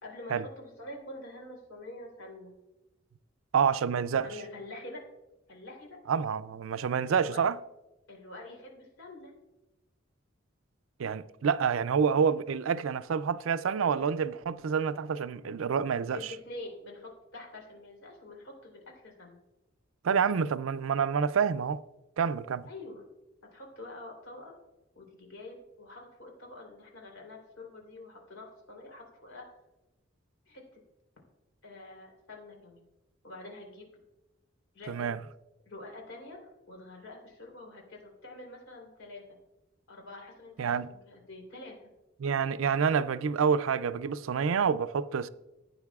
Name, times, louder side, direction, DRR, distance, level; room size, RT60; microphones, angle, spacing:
voice 1, 0.0-2.5 4.2-5.0 5.5-6.0 7.1-7.5 8.1-9.3 16.1-19.4 22.6-23.0 23.5-24.5 24.9-29.5 30.5-30.6 31.6-32.8 33.2-33.9 34.7-34.9 35.7-39.2 39.9-41.8, left 2 dB, 80° left, 3.4 m, -46 dB
voice 2, 3.5-4.4 6.1-7.6 11.0-16.3 20.0-21.8 22.2-22.7 34.9-35.2 40.6-40.9 42.2-45.3, right 6 dB, 85° right, 0.4 m, -28 dB
16.0 x 9.0 x 2.4 m
head